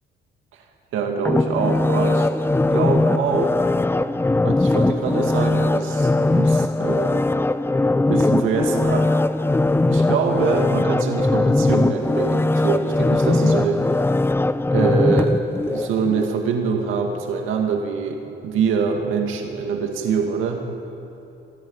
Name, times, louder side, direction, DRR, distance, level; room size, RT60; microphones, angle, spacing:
voice 1, 0.9-2.3 2.7-3.6 4.4-7.2 8.1-9.1 9.8-13.8 14.7-20.6, right 5 dB, 90° right, 3 dB, 2.3 m, -24 dB
sound 1, 1.2-16.3 16.7-16.8, left 2 dB, 10° left, 0.6 m, -20 dB
27.0 x 12.0 x 8.9 m, 3.0 s
cardioid pair, 90°, 20 cm